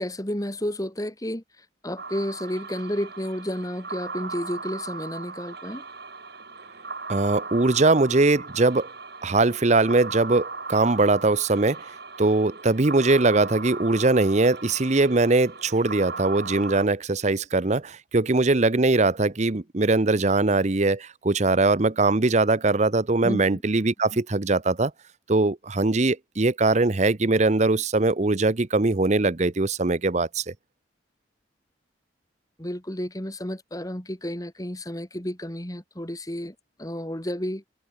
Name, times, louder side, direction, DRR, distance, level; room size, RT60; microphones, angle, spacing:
voice 1, 0.0-1.4 1.8-5.8 23.2-23.6 32.6-37.6, equal, 20° left, 2.5 m, -31 dB
sound 1, 2.0-16.9, right 4 dB, 55° right, 6.2 m, -38 dB
voice 2, 7.1-8.9 9.2-11.9 12.2-24.9 25.3-30.5, right 2 dB, 40° right, 0.8 m, -21 dB
head